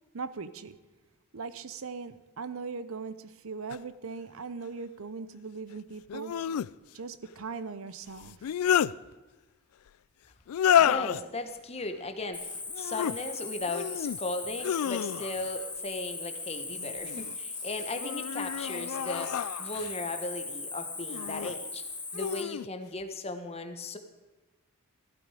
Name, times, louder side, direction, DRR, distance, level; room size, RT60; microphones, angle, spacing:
voice 1, 0.1-0.8 1.3-6.3 6.9-8.4, right 4 dB, 65° right, 14 dB, 0.7 m, -39 dB
sound 1, 3.7-3.8 6.1-6.7 8.2-8.9 10.5-11.2 12.7-13.2 13.7-14.2 14.6-15.5 16.7-17.3 18.0-20.0 21.1-21.5 22.1-22.7, left 9 dB, 80° left, 0.3 m, -29 dB
voice 2, 10.8-12.4 12.8-19.3 19.6-21.8 22.1-24.0, left 2 dB, 30° left, 7 dB, 1.1 m, -37 dB
Cricket, 12.3-22.4, left 3 dB, 5° left, 1.3 m, -39 dB
15.5 x 12.0 x 4.9 m, 1.2 s
head